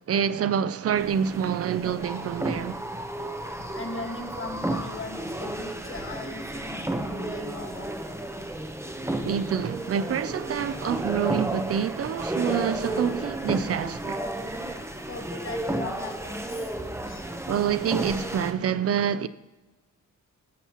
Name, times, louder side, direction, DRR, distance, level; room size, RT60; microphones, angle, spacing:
voice 1, 0.0-2.8 9.2-14.3 17.5-19.3, right 8 dB, 50° right, 0.5 m, -27 dB
sound 1, 1.0-18.5, right 1 dB, 10° right, 0.9 m, -33 dB
voice 2, 3.7-7.9 15.1-16.7 17.1-17.3, left 3 dB, 40° left, 1.8 m, -38 dB
18.0 x 7.0 x 3.1 m
cardioid pair, 95°, 32 cm